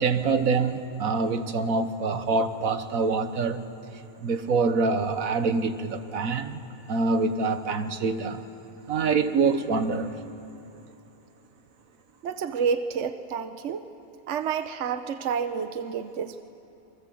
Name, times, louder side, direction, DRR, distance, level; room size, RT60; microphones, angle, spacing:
voice 1, 0.0-3.6 4.2-6.6 6.9-8.4 8.9-10.1, right 4 dB, 80° right, 1.6 m, -25 dB
voice 2, 12.2-13.9 14.3-16.4, right 6 dB, 60° right, 1.1 m, -29 dB
27.5 x 24.0 x 7.7 m
omnidirectional pair, 1.4 m